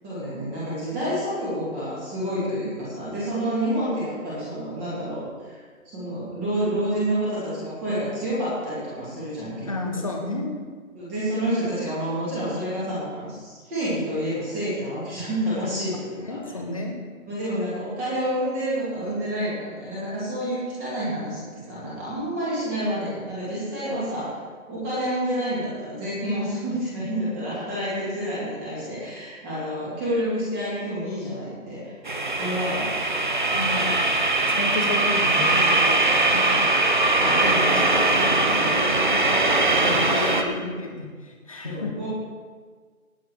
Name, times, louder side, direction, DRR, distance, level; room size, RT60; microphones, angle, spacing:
voice 1, 0.0-5.6 5.9-10.0 10.9-16.4 17.3-24.3 24.7-31.9 32.4-32.9 41.6-42.1, equal, 10° right, -9 dB, 2.4 m, -29 dB
voice 2, 9.6-10.6 16.1-17.0 33.5-34.1 34.5-36.7 37.2-39.5 39.8-41.9, left 2 dB, 25° left, 2 dB, 1.2 m, -31 dB
sound 1, 32.1-40.4, right 2 dB, 35° right, 0.9 m, -21 dB
18.0 x 7.8 x 4.6 m, 1.5 s
figure-of-eight pair, 160°, 43 cm